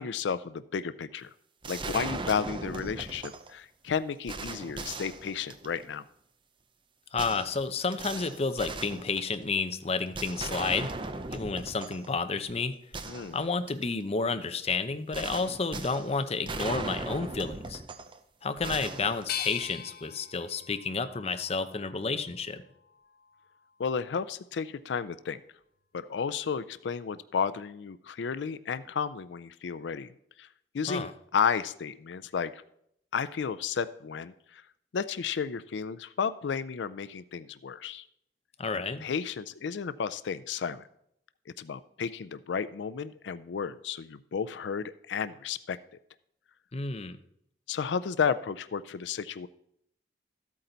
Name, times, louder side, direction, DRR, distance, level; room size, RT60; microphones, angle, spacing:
voice 1, 0.0-1.3 1.7-6.0 13.0-13.4 23.8-25.4 25.9-30.1 30.4-30.5 30.7-32.6 33.1-34.6 34.9-38.0 38.7-40.8 41.5-45.8 47.7-49.5, left 6 dB, 90° left, 14 dB, 0.4 m, -32 dB
sound 1, 1.6-3.5 3.9-4.0 4.3-5.9 7.2-9.6 10.1-12.1 12.5-12.6 12.9-13.9 15.1-18.2 18.6-19.9, right 3 dB, 30° right, 0.7 m, -38 dB
voice 2, 7.1-10.9 11.3-12.7 13.3-17.8 18.4-22.6 30.9-31.1 38.6-39.1 46.7-47.2, left 4 dB, 35° left, 9 dB, 0.6 m, -31 dB
sound 2, 19.3-22.2 22.8-23.6, left 10 dB, 60° left, 0.9 m, -41 dB
13.5 x 8.4 x 3.9 m, 0.73 s
head